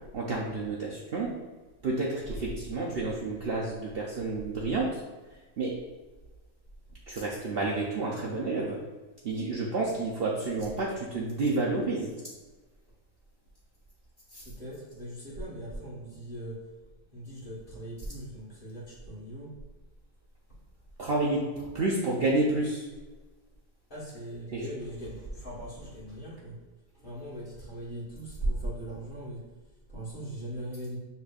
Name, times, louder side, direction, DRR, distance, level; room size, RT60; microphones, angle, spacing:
voice 1, 0.1-1.3 1.8-5.0 5.6-5.8 7.1-8.8 9.2-12.1 14.3-14.4 21.0-22.8 24.5-24.7, right 2 dB, 60° right, -4 dB, 0.6 m, -30 dB
voice 2, 9.9-10.5 14.4-16.6 17.1-19.6 23.9-26.6 26.9-29.4 29.9-31.0, right 1 dB, 40° left, -7 dB, 1.4 m, -39 dB
6.7 x 3.3 x 2.4 m, 1.2 s
omnidirectional pair, 1.5 m